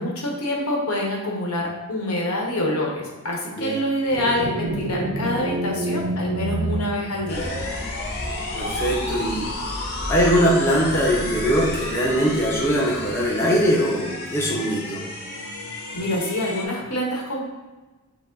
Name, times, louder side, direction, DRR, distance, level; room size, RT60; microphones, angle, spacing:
voice 1, 0.0-7.5 13.4-13.5 15.9-17.4, left 1 dB, 75° left, -2 dB, 1.1 m, -26 dB
sound 1, 4.1-7.8, right 2 dB, 55° right, 0.4 m, -28 dB
sound 2, 7.3-16.6, left 2 dB, 50° left, 0.9 m, -31 dB
voice 2, 8.5-15.0, equal, 10° left, -4 dB, 0.7 m, -22 dB
6.0 x 2.0 x 3.7 m, 1.2 s
head